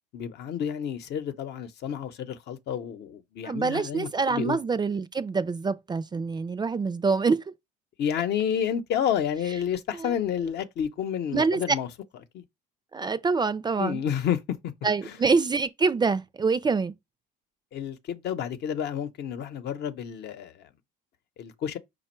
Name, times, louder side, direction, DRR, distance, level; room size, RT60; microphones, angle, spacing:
voice 1, 0.1-4.6 8.0-11.9 12.3-12.4 13.8-14.6 15.0-15.2 17.7-20.7 21.4-21.8, left 9 dB, 55° left, 0.8 m, -30 dB
voice 2, 3.4-7.4 10.0-10.1 11.3-11.6 12.9-14.0 14.8-16.9, right 4 dB, 20° right, 0.4 m, -25 dB
5.2 x 2.3 x 4.4 m
supercardioid pair, 85°, 20 cm